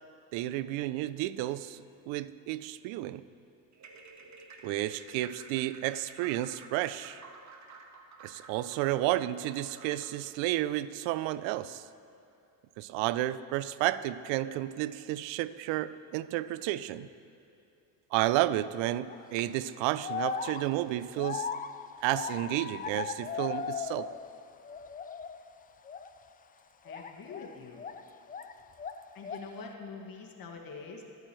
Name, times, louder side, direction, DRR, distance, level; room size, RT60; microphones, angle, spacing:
voice 1, 0.3-3.2 4.6-7.2 8.2-11.8 12.8-17.1 18.1-21.5 22.0-24.1, right 15 dB, 80° right, 16 dB, 0.6 m, -32 dB
sound 1, 3.7-10.2, right 3 dB, 40° right, 1.5 m, -52 dB
sound 2, 19.1-19.4 20.0-24.4 24.6-25.4 25.8-26.1 26.9-28.5 28.8-29.6, left 6 dB, 20° left, 0.4 m, -38 dB
voice 2, 26.8-27.8 29.1-31.0, left 4 dB, 50° left, 1 dB, 2.1 m, -44 dB
23.5 x 9.1 x 3.2 m, 2.8 s
supercardioid pair, 85°, 45 cm